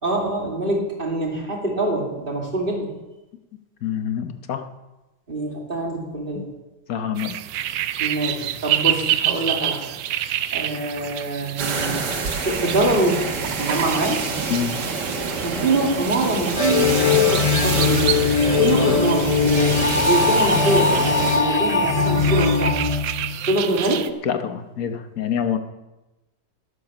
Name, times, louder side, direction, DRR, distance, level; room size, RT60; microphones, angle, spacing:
voice 1, 0.0-2.9 5.3-6.5 8.0-9.9 10.5-12.0 12.4-13.3 13.6-14.3 15.4-18.1 18.6-22.7 23.5-24.1, right 2 dB, 30° right, 0 dB, 2.5 m, -24 dB
voice 2, 3.8-4.7 6.3-6.4 6.9-7.4 14.5-14.7 24.2-25.6, left 8 dB, 55° left, 8 dB, 1.3 m, -26 dB
sound 1, 7.2-24.1, right 11 dB, 90° right, 1.4 m, -29 dB
sound 2, 11.6-21.4, right 4 dB, 65° right, 2.2 m, -27 dB
sound 3, 16.6-23.6, left 4 dB, 35° left, 0.6 m, -20 dB
12.5 x 10.5 x 6.0 m, 1.0 s
omnidirectional pair, 2.0 m